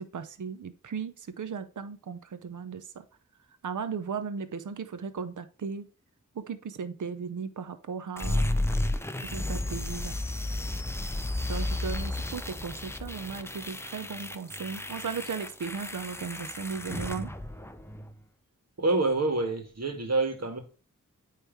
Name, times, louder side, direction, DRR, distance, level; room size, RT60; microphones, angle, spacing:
voice 1, 0.0-3.0 3.6-5.8 6.4-8.5 9.2-10.2 11.5-17.3, right 6 dB, 70° right, 0.7 m, -36 dB
sound 1, 8.2-18.1, left 1 dB, 10° left, 0.6 m, -33 dB
voice 2, 18.8-20.6, right 2 dB, 55° right, 1.8 m, -27 dB
9.1 x 3.3 x 4.6 m
wide cardioid pair, 95°, 31 cm